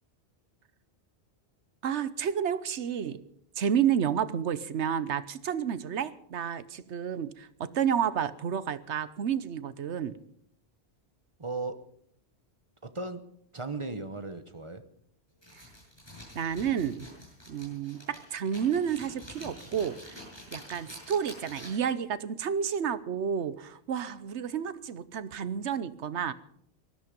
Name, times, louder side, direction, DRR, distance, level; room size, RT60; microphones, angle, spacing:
voice 1, 1.8-3.2 3.6-10.2 16.3-17.1 17.5-20.2 20.5-26.3, right 8 dB, 85° right, 15 dB, 1.2 m, -30 dB
voice 2, 11.4-11.8 12.8-13.2 13.5-14.8, right 3 dB, 30° right, 10 dB, 1.1 m, -36 dB
sound 1, 15.4-21.9, left 1 dB, 20° left, 7.6 m, -47 dB
19.0 x 13.5 x 5.3 m, 0.68 s
omnidirectional pair, 1.1 m